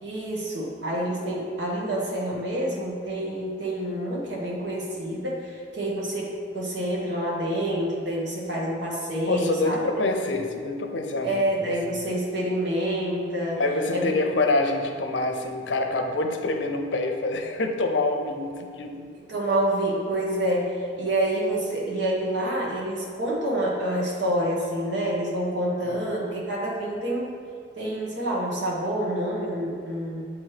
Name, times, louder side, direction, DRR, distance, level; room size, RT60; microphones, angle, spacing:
voice 1, 0.0-9.8 11.2-13.6 13.9-14.1 19.3-27.4 27.8-30.3, right 1 dB, 75° right, -4 dB, 1.4 m, -27 dB
voice 2, 9.3-11.7 13.6-19.1 25.9-26.0, left 2 dB, 80° left, 4 dB, 0.7 m, -26 dB
8.0 x 3.1 x 5.0 m, 2.3 s
head